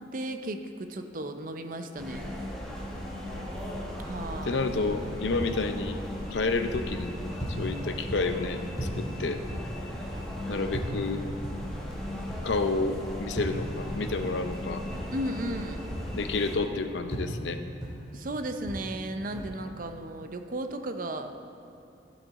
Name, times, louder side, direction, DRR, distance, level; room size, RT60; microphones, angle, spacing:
voice 1, 0.1-2.3 4.0-4.6 15.1-15.8 18.1-21.3, right 1 dB, 45° right, 7 dB, 0.6 m, -35 dB
sound 1, 2.0-16.6, left 1 dB, 5° left, 1.3 m, -37 dB
voice 2, 3.2-3.6 4.4-6.0 6.3-7.2 7.6-9.4 10.5-11.2 12.4-14.8 16.1-17.6, left 3 dB, 75° left, 8 dB, 0.6 m, -30 dB
sound 2, 4.5-15.6 15.9-19.4, equal, 20° right, 2.1 m, -39 dB
15.0 x 7.3 x 4.1 m, 2.6 s
head